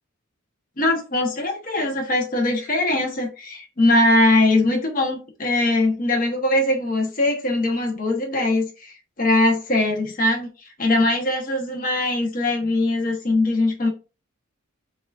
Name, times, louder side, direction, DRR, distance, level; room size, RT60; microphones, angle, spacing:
voice 1, 0.8-13.9, left 2 dB, 45° left, 1.1 m, -21 dB
5.7 x 2.6 x 2.5 m
head